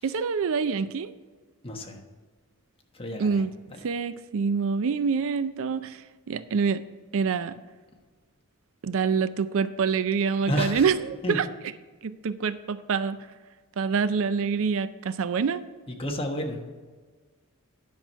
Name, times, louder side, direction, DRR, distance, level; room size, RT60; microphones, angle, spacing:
voice 1, 0.0-1.1 3.2-3.5 3.8-6.8 7.1-7.6 8.8-11.5 12.0-13.2 13.8-15.6, right 5 dB, 65° right, 14 dB, 0.4 m, -26 dB
voice 2, 1.6-2.0 2.9-3.9 10.5-10.9 11.2-11.4 15.9-16.6, equal, 25° left, 2 dB, 1.3 m, -31 dB
10.5 x 6.0 x 5.4 m, 1.4 s
head